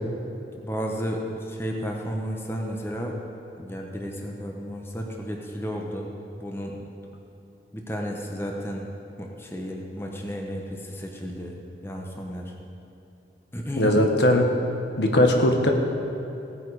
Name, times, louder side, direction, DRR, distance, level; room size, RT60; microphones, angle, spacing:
voice 1, 0.6-3.2 3.6-6.1 6.4-6.8 7.7-8.9 9.2-11.6 11.8-12.5 13.5-14.0, equal, 15° left, 0 dB, 1.0 m, -32 dB
voice 2, 13.8-14.4 15.0-15.7, left 1 dB, 70° left, 3 dB, 1.3 m, -19 dB
17.0 x 9.2 x 4.9 m, 2.8 s
head